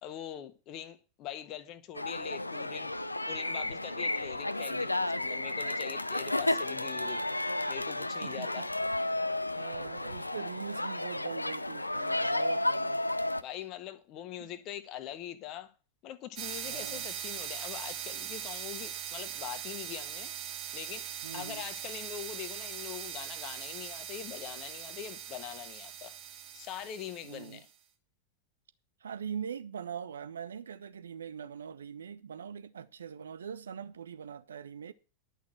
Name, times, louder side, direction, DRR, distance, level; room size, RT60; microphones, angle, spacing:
voice 1, 0.0-2.9 3.3-7.2 7.7-8.7 13.4-15.7 16.0-20.3 20.7-21.1 21.3-27.7, left 11 dB, 40° left, 1.3 m, -43 dB
sound 1, 1.9-13.4, left 2 dB, 85° left, 0.5 m, -32 dB
voice 2, 8.2-8.7 9.5-13.0 14.4-14.5 16.6-17.1 21.2-21.7 27.2-27.6 29.0-34.9, right 7 dB, 70° right, 0.8 m, -42 dB
sound 2, 16.4-27.6, right 9 dB, 40° right, 1.8 m, -41 dB
11.0 x 6.2 x 7.6 m
figure-of-eight pair, 90°, 0 cm